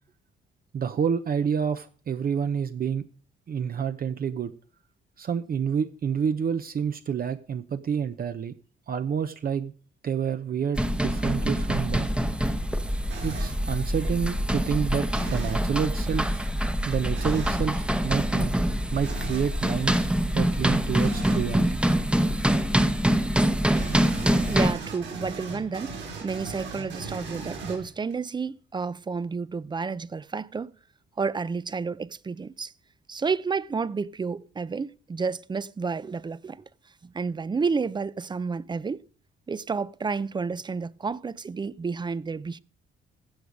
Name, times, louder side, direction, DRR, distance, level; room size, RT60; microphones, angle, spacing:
voice 1, 0.7-3.0 3.5-4.5 5.2-8.5 8.9-9.7 10.0-12.1 13.2-16.5 16.8-18.5 18.9-21.8, right 7 dB, 50° right, 0.8 m, -28 dB
sound 1, 10.7-24.7, equal, 5° right, 1.0 m, -25 dB
sound 2, 13.1-13.6 15.1-15.7 17.1-17.6 19.0-19.5 21.0-21.5 23.7-28.1, right 4 dB, 70° right, 5.3 m, -38 dB
voice 2, 24.2-30.7 31.2-32.7 33.1-36.6 37.0-39.0 39.5-42.6, right 5 dB, 20° right, 0.5 m, -30 dB
15.5 x 5.2 x 6.3 m
cardioid pair, 90°, 20 cm